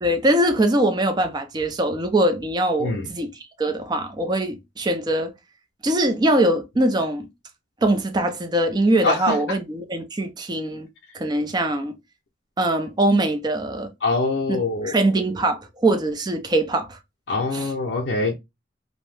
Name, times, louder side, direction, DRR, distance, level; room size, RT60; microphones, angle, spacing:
voice 1, 0.0-3.3 3.6-5.3 5.8-7.3 7.8-10.9 11.1-11.9 12.6-13.9 14.5-14.6 14.8-17.0 17.5-17.7, right 1 dB, 25° right, 0.4 m, -22 dB
voice 2, 2.8-3.1 9.0-9.6 14.0-14.9 17.3-18.4, left 3 dB, 65° left, 0.5 m, -24 dB
2.6 x 2.0 x 3.2 m
head